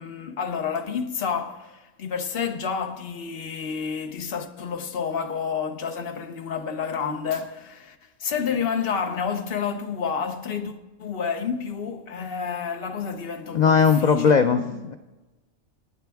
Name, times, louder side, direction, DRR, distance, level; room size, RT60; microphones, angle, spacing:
voice 1, 0.0-14.8, left 6 dB, 50° left, 0.9 m, -30 dB
voice 2, 13.5-14.6, left 6 dB, 70° left, 0.4 m, -17 dB
19.0 x 8.8 x 3.4 m
omnidirectional pair, 1.4 m